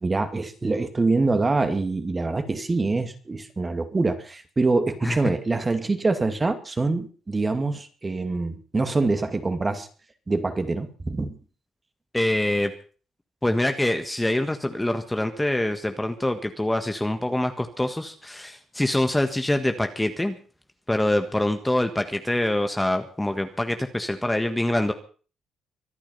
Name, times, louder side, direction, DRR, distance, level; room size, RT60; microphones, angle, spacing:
voice 1, 0.0-9.9 10.3-11.4, right 3 dB, 25° right, 2.5 m, -25 dB
voice 2, 12.1-12.7 13.4-20.4 20.9-24.9, left 1 dB, 10° left, 1.6 m, -25 dB
24.5 x 8.8 x 5.6 m
cardioid pair, 90°, 0 cm